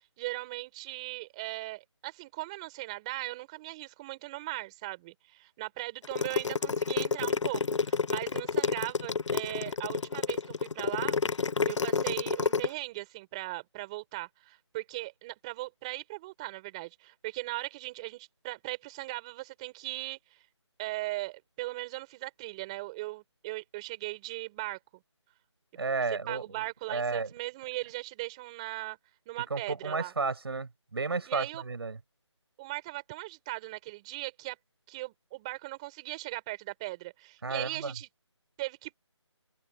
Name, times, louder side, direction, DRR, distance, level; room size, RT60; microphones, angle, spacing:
voice 1, 0.2-11.2 11.7-20.2 20.8-25.0 26.3-29.0 29.3-30.1 31.3-31.6 32.6-34.6 34.9-38.1 38.6-39.0, right 20 dB, 10° right, 4.3 m, -38 dB
sound 1, 6.0-12.7, left 5 dB, 75° left, 0.5 m, -29 dB
voice 2, 25.7-27.3 29.5-32.0 37.4-38.0, right 4 dB, 55° right, 6.3 m, -33 dB
figure-of-eight pair, 170°, 15 cm